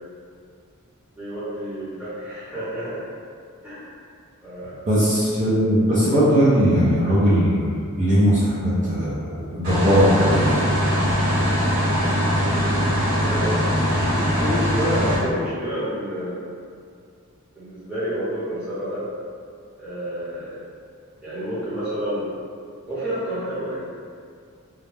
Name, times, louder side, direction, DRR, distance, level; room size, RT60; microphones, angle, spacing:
voice 1, 1.2-3.0 3.6-3.9 4.4-4.8 13.0-16.4 17.5-19.1 19.8-20.6 21.2-22.3 22.9-23.9, equal, 5° right, -13 dB, 0.8 m, -29 dB
voice 2, 4.9-10.6, equal, 35° right, -11 dB, 0.4 m, -19 dB
sound 1, 9.6-15.2, equal, 65° right, 1.0 m, -21 dB
2.3 x 2.1 x 3.2 m, 2.2 s
head